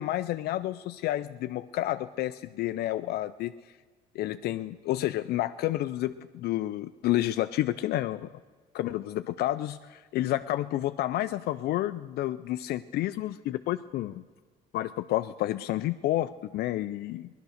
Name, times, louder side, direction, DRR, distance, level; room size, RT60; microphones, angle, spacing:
voice 1, 0.0-3.6 4.2-8.3 8.7-14.2 14.7-17.3, left 14 dB, 70° left, 11 dB, 0.4 m, -30 dB
17.5 x 11.5 x 6.4 m, 1.4 s
cardioid pair, 110°, 17 cm